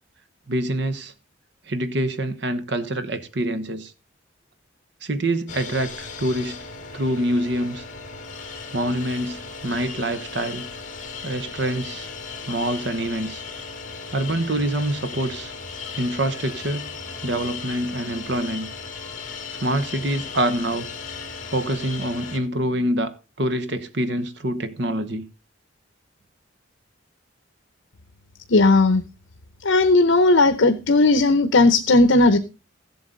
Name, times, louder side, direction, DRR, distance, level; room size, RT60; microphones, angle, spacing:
voice 1, 0.5-1.1 1.7-3.9 5.0-6.6 6.9-7.8 8.7-10.7 11.2-12.1 12.5-13.4 14.1-15.5 16.0-16.9 17.2-18.7 19.6-20.9 21.5-25.3, right 1 dB, 60° right, 1.0 m, -25 dB
sound 1, 5.5-22.4, left 5 dB, 40° left, 2.1 m, -36 dB
voice 2, 28.5-29.0 29.6-32.4, left 2 dB, 75° left, 0.9 m, -16 dB
15.5 x 7.9 x 3.9 m
head